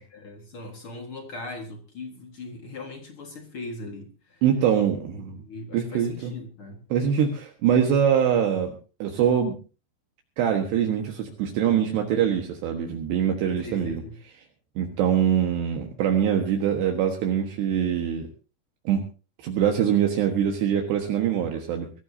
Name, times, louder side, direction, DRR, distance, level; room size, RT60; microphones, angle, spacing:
voice 1, 0.1-4.4 5.4-6.8 13.6-14.2, left 2 dB, 60° left, 1.4 m, -39 dB
voice 2, 4.4-5.4 5.7-6.3 6.9-8.8 9.0-9.6 10.4-14.0 14.8-18.3 18.9-19.0 19.4-21.9, right 8 dB, 70° right, 3.5 m, -23 dB
22.5 x 15.0 x 2.8 m
omnidirectional pair, 5.3 m